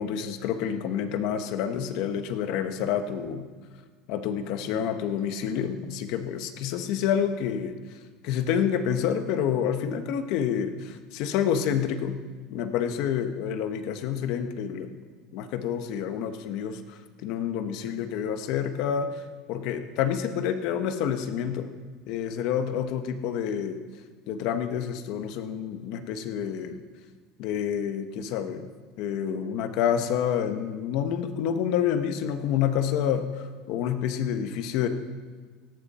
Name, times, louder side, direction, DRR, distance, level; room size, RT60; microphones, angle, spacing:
voice 1, 0.0-3.5 4.1-7.8 8.2-12.1 12.5-15.0 15.3-19.2 19.5-21.7 22.1-23.8 24.3-26.8 27.4-28.7 29.0-34.9, left 8 dB, 55° left, 8 dB, 1.2 m, -28 dB
18.0 x 17.0 x 4.3 m, 1.5 s
cardioid pair, 160°, 0 cm